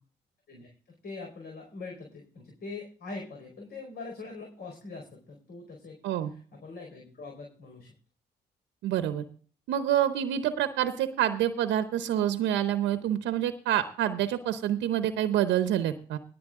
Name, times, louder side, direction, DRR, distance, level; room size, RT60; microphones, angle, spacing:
voice 1, 1.0-6.0 6.2-7.9, left 3 dB, 60° left, 1 dB, 4.6 m, -43 dB
voice 2, 8.8-9.3 9.7-16.2, right 11 dB, 90° right, 10 dB, 0.8 m, -27 dB
17.0 x 8.4 x 3.7 m, 0.41 s
supercardioid pair, 65°, 18 cm